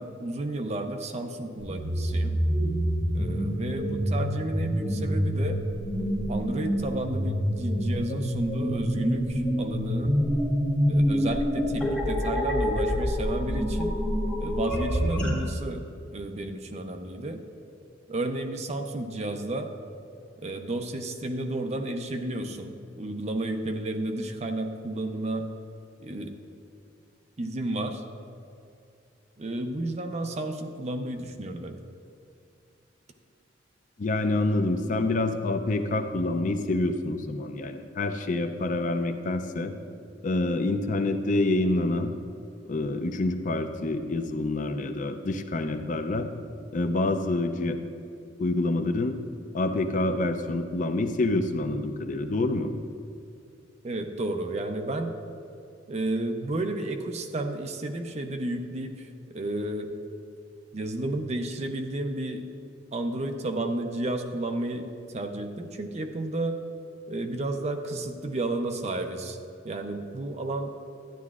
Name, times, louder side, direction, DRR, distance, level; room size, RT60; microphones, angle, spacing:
voice 1, 0.0-2.4 3.1-5.6 6.3-10.2 10.9-14.0 14.4-15.9 16.1-17.4 18.1-19.7 20.4-25.5 26.0-26.3 27.4-28.0 29.4-31.8 53.8-55.1 55.9-59.9 60.7-62.5 62.9-66.6 67.1-69.4 69.6-70.7, right 2 dB, 35° right, 5 dB, 0.6 m, -32 dB
sound 1, 1.6-15.3, equal, 5° left, 1.5 m, -27 dB
voice 2, 34.0-39.7 40.2-42.1 42.6-46.3 46.7-47.8 48.4-49.2 49.5-52.7, left 2 dB, 45° left, 8 dB, 0.5 m, -27 dB
11.5 x 10.0 x 2.4 m, 2.6 s
head